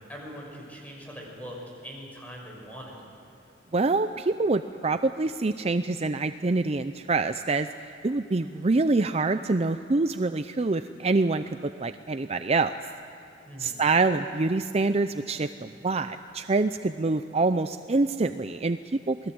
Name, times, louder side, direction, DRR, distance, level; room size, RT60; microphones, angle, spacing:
voice 1, 0.1-3.0 13.5-13.8, equal, 10° left, -1 dB, 6.5 m, -42 dB
voice 2, 3.7-7.7 8.0-12.7 13.6-18.8 19.1-19.2, right 3 dB, 35° right, 10 dB, 0.5 m, -25 dB
28.0 x 20.5 x 7.9 m, 2.9 s
head